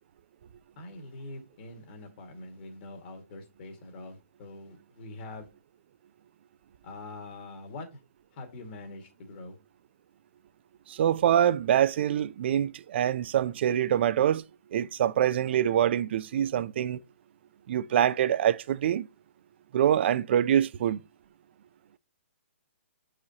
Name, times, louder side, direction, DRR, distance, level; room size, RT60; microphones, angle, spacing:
voice 1, 0.8-5.5 6.8-8.0 8.3-9.6, left 2 dB, 45° left, 1.9 m, -44 dB
voice 2, 10.9-14.4 14.7-17.0 17.7-19.1 19.7-21.0, right 10 dB, 50° right, 0.4 m, -25 dB
8.1 x 4.9 x 2.9 m
hypercardioid pair, 145°, 8 cm